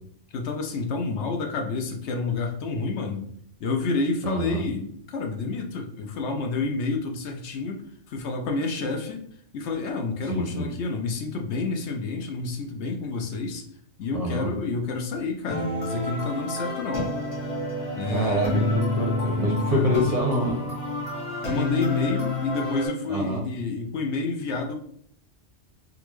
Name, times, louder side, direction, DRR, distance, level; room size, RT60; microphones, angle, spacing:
voice 1, 0.3-3.3 3.6-7.8 8.1-9.2 9.5-13.7 14.0-17.1 17.9-18.7 19.6-20.1 21.4-24.8, left 3 dB, 75° left, 3 dB, 0.9 m, -29 dB
voice 2, 4.2-4.6 10.3-10.7 14.1-14.5 18.1-20.6 23.1-23.4, equal, 40° right, -2 dB, 0.6 m, -26 dB
sound 1, 15.5-22.9, left 2 dB, 50° left, 1.3 m, -28 dB
3.7 x 2.3 x 3.0 m, 0.65 s
omnidirectional pair, 1.2 m